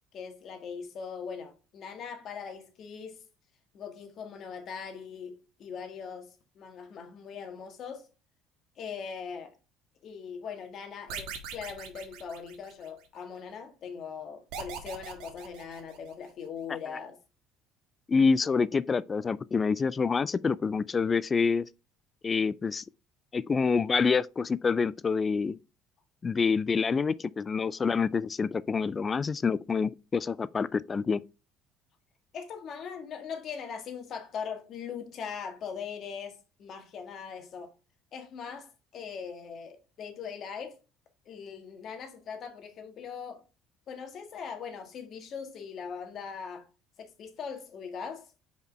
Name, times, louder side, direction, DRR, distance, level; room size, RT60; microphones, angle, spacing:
voice 1, 0.1-3.3 3.7-8.1 8.8-9.6 10.0-17.2 32.3-37.7 38.1-40.8 41.3-43.4 43.9-46.7 47.0-48.3, left 6 dB, 50° left, 1.8 m, -40 dB
sound 1, 11.1-13.1 14.5-16.3, right 6 dB, 80° right, 1.5 m, -41 dB
voice 2, 18.1-21.7 22.2-22.8 23.3-25.6 26.2-31.2, left 5 dB, 25° left, 0.3 m, -27 dB
5.1 x 5.1 x 4.6 m
cardioid pair, 120°, 0 cm